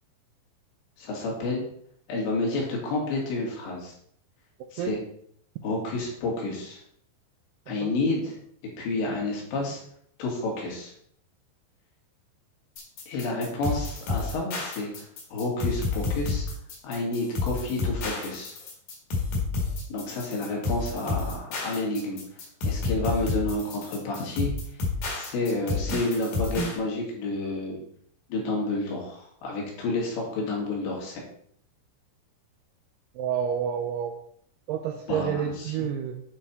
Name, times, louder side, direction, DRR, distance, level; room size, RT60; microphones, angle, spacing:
voice 1, 1.0-1.6 2.1-3.9 4.7-5.0 5.6-6.8 7.7-8.4 8.8-9.8 10.2-10.9 13.1-16.5 16.8-18.5 19.9-22.4 22.6-24.5 25.0-27.8 28.3-31.2 35.1-35.9, left 2 dB, 75° left, -2 dB, 4.3 m, -30 dB
sound 1, 12.8-26.8, left 3 dB, 50° left, 2.9 m, -30 dB
voice 2, 33.2-34.2 34.7-36.2, right 8 dB, 85° right, 5 dB, 2.3 m, -29 dB
9.0 x 5.4 x 4.2 m, 0.65 s
omnidirectional pair, 5.3 m